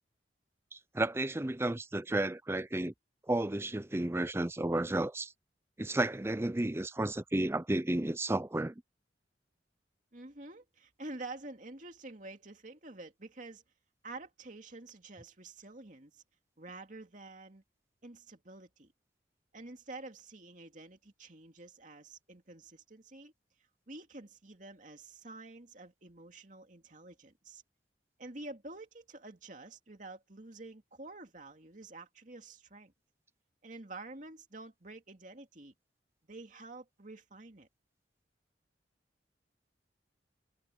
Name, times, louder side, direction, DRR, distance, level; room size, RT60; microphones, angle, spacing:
voice 1, 0.7-2.9 3.3-5.3 5.8-8.7, right 1 dB, 15° right, 0.5 m, -32 dB
voice 2, 10.1-13.6 14.0-16.2 16.6-17.6 18.0-18.9 19.5-23.3 23.9-27.6 28.2-32.9 33.6-35.7 36.3-37.7, right 2 dB, 45° right, 2.5 m, -48 dB
head